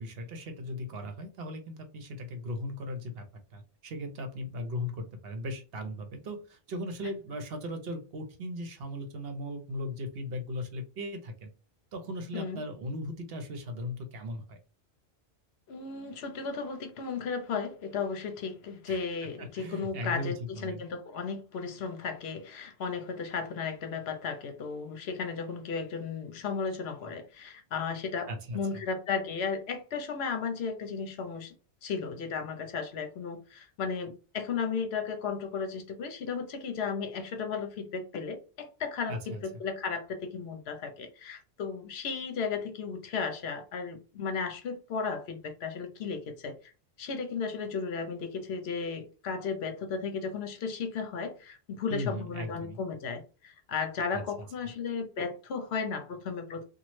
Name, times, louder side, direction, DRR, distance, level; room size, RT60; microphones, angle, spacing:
voice 1, 0.0-3.2 3.5-11.5 11.9-14.6 18.9-19.0 19.4-20.8 28.3-28.8 39.1-39.4 51.9-52.8 54.1-54.2, left 1 dB, 65° right, 0.9 m, -38 dB
voice 2, 12.3-12.6 15.7-28.3 28.5-31.5 31.8-46.6 47.0-56.7, left 5 dB, 70° left, 0.9 m, -35 dB
3.0 x 2.3 x 3.1 m
omnidirectional pair, 1.1 m